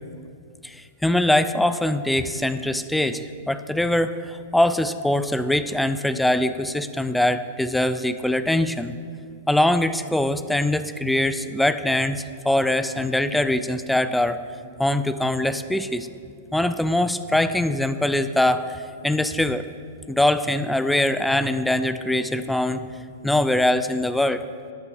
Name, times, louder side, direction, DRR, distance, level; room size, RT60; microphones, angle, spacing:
voice 1, 0.6-8.9 9.5-14.4 14.8-16.1 16.5-19.6 20.1-22.9 23.2-24.4, left 1 dB, 5° left, 12 dB, 0.5 m, -22 dB
12.5 x 6.9 x 7.1 m, 2.3 s
hypercardioid pair, 105°, 0 cm